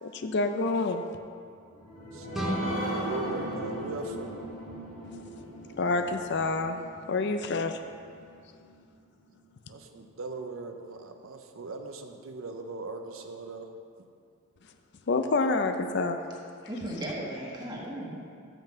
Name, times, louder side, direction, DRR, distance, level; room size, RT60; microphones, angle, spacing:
voice 1, 0.0-1.0 5.8-6.8 7.1-7.8 15.1-16.2, left 3 dB, 55° left, 7 dB, 0.5 m, -27 dB
sound 1, 1.6-8.7 9.2-9.3 9.6-9.7, equal, 75° left, 2.3 m, -38 dB
voice 2, 2.1-4.3 9.7-13.7, right 3 dB, 75° right, 5 dB, 0.6 m, -39 dB
sound 2, 2.3-5.1, right 1 dB, ahead, 0.9 m, -36 dB
voice 3, 16.7-18.3, right 1 dB, 20° right, -4 dB, 1.5 m, -36 dB
6.9 x 5.9 x 6.7 m, 2.3 s
head